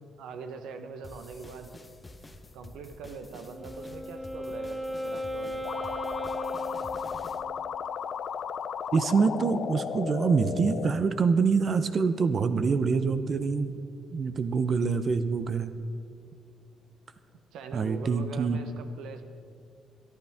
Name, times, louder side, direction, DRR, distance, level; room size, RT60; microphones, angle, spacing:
voice 1, 0.0-1.7 2.5-5.7 17.5-19.2, right 5 dB, 85° right, 7 dB, 1.1 m, -42 dB
sound 1, 1.0-7.4, left 2 dB, 20° left, 1.0 m, -49 dB
Wind instrument woodwind instrument, 3.3-7.7, equal, 10° right, 1.2 m, -36 dB
sound 2, 5.6-10.9, left 7 dB, 60° left, 0.5 m, -34 dB
voice 2, 8.9-13.8 14.1-15.7 17.7-18.6, right 5 dB, 45° right, 11 dB, 0.7 m, -25 dB
21.5 x 11.5 x 3.6 m, 2.3 s
cardioid pair, 90°, 0 cm